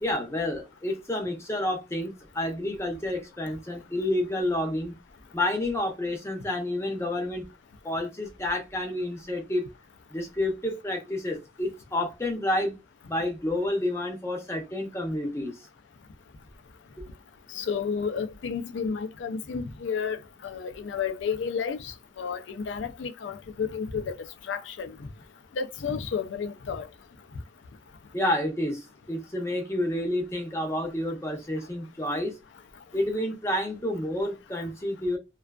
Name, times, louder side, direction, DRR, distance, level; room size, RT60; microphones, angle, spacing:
voice 1, 0.0-5.0 5.3-7.4 7.8-9.7 10.1-12.8 13.1-15.5 17.0-17.1 28.1-32.3 32.9-35.2, left 1 dB, 15° left, 0.6 m, -29 dB
voice 2, 17.5-20.2 20.4-24.1 24.5-24.9 25.6-26.9, left 6 dB, 80° left, 0.4 m, -31 dB
2.4 x 2.3 x 2.2 m
head